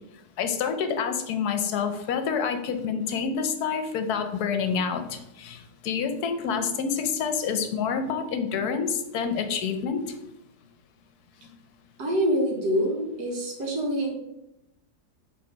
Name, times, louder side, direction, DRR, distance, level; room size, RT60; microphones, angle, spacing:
voice 1, 0.4-10.1, left 6 dB, 75° left, 7 dB, 1.2 m, -28 dB
voice 2, 12.0-14.1, equal, 80° right, 0 dB, 1.9 m, -26 dB
4.9 x 3.8 x 5.2 m, 0.85 s
omnidirectional pair, 1.7 m